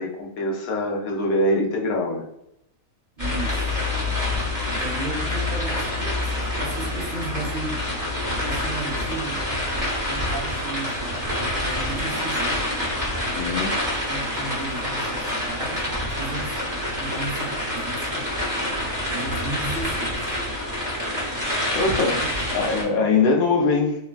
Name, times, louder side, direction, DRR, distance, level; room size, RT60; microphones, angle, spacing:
voice 1, 0.0-2.2 13.2-13.7 21.7-22.2 22.5-24.0, left 3 dB, 75° left, -1 dB, 1.1 m, -22 dB
sound 1, 3.2-22.8, left 1 dB, 15° right, 0.8 m, -27 dB
voice 2, 3.2-4.2 4.7-7.8 8.3-9.5 10.0-12.7 13.8-18.4 19.1-20.5 22.1-22.4, right 2 dB, 40° right, -3 dB, 0.8 m, -35 dB
3.0 x 2.2 x 2.4 m, 0.83 s
omnidirectional pair, 1.6 m